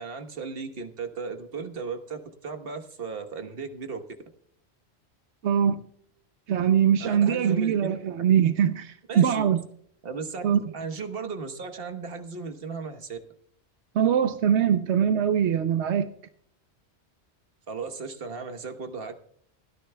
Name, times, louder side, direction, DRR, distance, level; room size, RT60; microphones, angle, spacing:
voice 1, 0.0-4.0 7.0-8.0 9.1-9.4 10.0-10.4 10.7-13.2 17.7-19.2, right 4 dB, 60° right, 1.4 m, -36 dB
voice 2, 5.4-5.8 6.5-9.6 10.4-10.6 13.9-16.1, right 8 dB, 85° right, 1.0 m, -22 dB
29.5 x 10.0 x 2.2 m
omnidirectional pair, 1.1 m